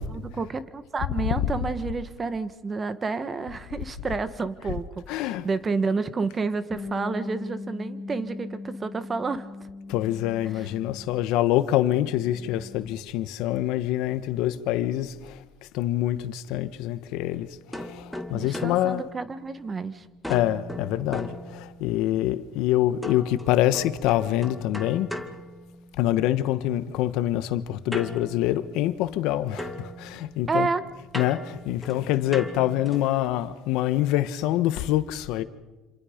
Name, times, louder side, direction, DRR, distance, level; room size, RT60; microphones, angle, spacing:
voice 1, 0.1-9.4 10.6-10.7 18.3-20.0 30.5-30.8, right 4 dB, 30° right, 1.5 m, -30 dB
voice 2, 1.2-1.6 4.6-4.8 5.1-5.5 9.9-19.1 20.3-25.1 26.0-30.7 31.0-35.4, left 13 dB, 75° left, 1.3 m, -26 dB
Bass guitar, 6.7-11.4 11.7-13.0, left 3 dB, 20° left, 3.0 m, -39 dB
sound 1, 17.7-19.8 20.2-22.1 23.0-26.2 27.9-29.3 29.6-33.2, equal, ahead, 2.1 m, -39 dB
27.5 x 27.0 x 5.2 m
supercardioid pair, 100°, 0 cm